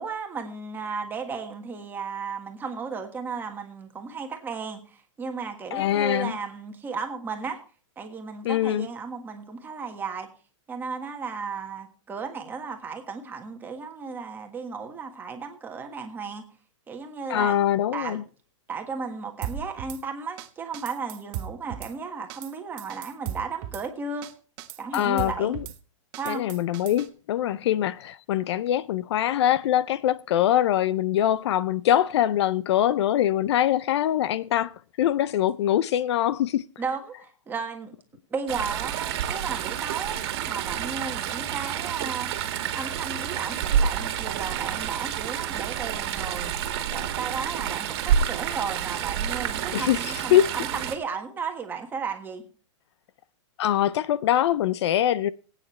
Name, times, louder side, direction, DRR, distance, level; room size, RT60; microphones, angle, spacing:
voice 1, 0.0-7.6 8.0-10.3 10.7-16.4 16.9-17.6 17.9-18.2 18.7-24.3 24.8-25.5 26.2-26.4 27.4-27.7 36.8-37.9 38.3-42.3 42.7-46.5 46.9-52.4, right 5 dB, 10° right, 1.6 m, -34 dB
voice 2, 5.7-6.3 8.4-8.9 17.3-18.2 24.9-25.6 26.3-36.6 49.7-50.5 53.6-55.3, left 11 dB, 60° left, 0.5 m, -23 dB
Drum kit / Snare drum, 19.4-20.0 20.4-20.5 20.7-21.9 22.3-22.5 22.8-23.8 24.2-24.3 24.6-25.8 26.1-27.1, right 11 dB, 30° right, 1.0 m, -36 dB
Chatter / Stream, 38.5-50.9, right 8 dB, 50° right, 1.8 m, -29 dB
19.5 x 9.0 x 3.2 m
hypercardioid pair, 155°, 16 cm